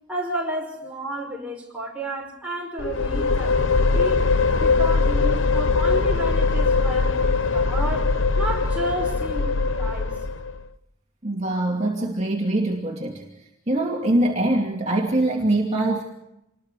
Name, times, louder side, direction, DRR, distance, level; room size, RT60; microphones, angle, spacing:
voice 1, 0.1-4.3 4.6-10.2, right 1 dB, 5° right, -1 dB, 5.5 m, -32 dB
sound 1, 2.8-10.6, left 4 dB, 70° left, 0.9 m, -21 dB
voice 2, 11.2-13.2 13.7-16.0, right 1 dB, 35° right, -1 dB, 2.5 m, -23 dB
27.0 x 21.0 x 4.8 m, 0.85 s
head